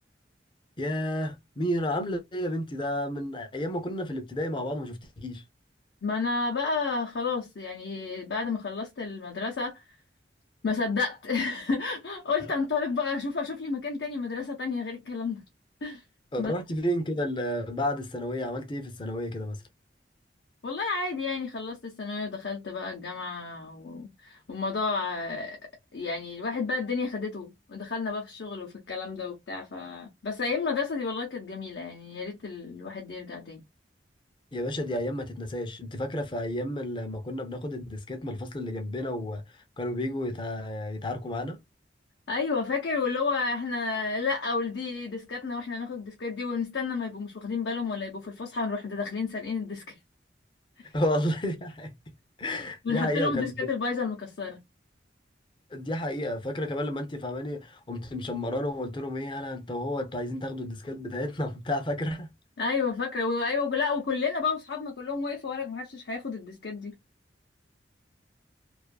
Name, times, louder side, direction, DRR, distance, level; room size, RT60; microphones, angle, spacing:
voice 1, 0.8-5.4 16.3-19.6 34.5-39.4 39.8-41.6 50.9-53.7 55.7-62.3, left 1 dB, 25° left, 0.5 m, -31 dB
voice 2, 6.0-9.8 10.6-15.4 15.8-16.0 16.4-16.5 20.6-25.6 25.9-33.6 42.3-50.0 50.8-50.9 52.8-54.6 62.6-67.0, left 4 dB, 75° left, 0.7 m, -31 dB
2.5 x 2.4 x 2.3 m
head